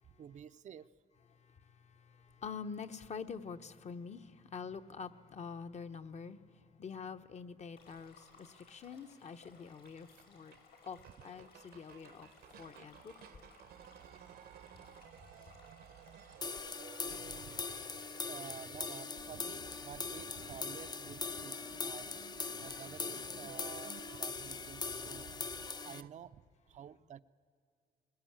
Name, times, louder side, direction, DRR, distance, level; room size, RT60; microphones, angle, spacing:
voice 1, 0.2-0.9 17.1-17.8 18.3-21.6 21.8-22.1 22.6-25.3 25.8-27.2, right 9 dB, 50° right, 0.5 m, -51 dB
voice 2, 1.9-10.5 10.8-12.3 12.6-13.1, left 5 dB, 45° left, 1.0 m, -46 dB
Stream, 7.8-17.7, left 4 dB, 85° left, 5.6 m, -62 dB
sound 1, 9.8-9.9 10.2-10.3 10.5-10.6 10.9-26.1, right 9 dB, 80° right, 1.1 m, -55 dB
sound 2, 16.4-26.0, left 4 dB, 25° left, 0.5 m, -41 dB
21.0 x 20.5 x 8.8 m
cardioid pair, 115°, 16 cm